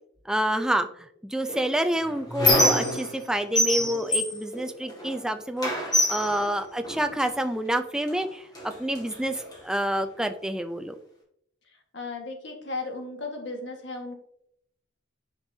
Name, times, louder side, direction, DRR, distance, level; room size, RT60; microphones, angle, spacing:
voice 1, 0.3-0.9 1.2-8.5 8.8-11.0, right 1 dB, 5° right, 7 dB, 0.4 m, -28 dB
Squeak, 1.5-3.3 3.6-5.2 5.6-7.3 8.1-8.2 8.5-9.6, equal, 20° left, 1.9 m, -26 dB
voice 2, 11.7-14.2, left 3 dB, 75° left, 2 dB, 1.6 m, -36 dB
9.1 x 5.4 x 2.7 m, 0.73 s
head